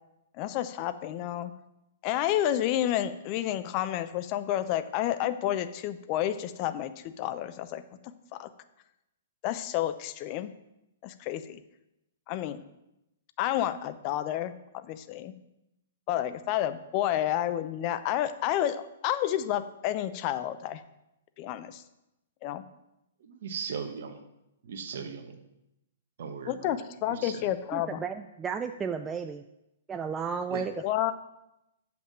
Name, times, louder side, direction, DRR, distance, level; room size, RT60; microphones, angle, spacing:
voice 1, 0.4-1.5 2.0-7.8 8.3-8.5 9.4-10.5 11.0-11.6 12.3-12.6 13.4-15.3 16.1-20.8 21.4-21.8 22.4-22.6 26.5-28.0 30.8-31.1, left 12 dB, 40° left, 12 dB, 0.6 m, -30 dB
voice 2, 23.2-24.2 24.6-25.3 26.2-26.7 27.1-27.5 30.5-30.6, right 6 dB, 60° right, 7 dB, 1.2 m, -38 dB
voice 3, 27.7-29.4 29.9-30.8, right 6 dB, 15° right, 7 dB, 0.4 m, -33 dB
7.2 x 5.9 x 7.4 m, 0.89 s
figure-of-eight pair, 115°, 0 cm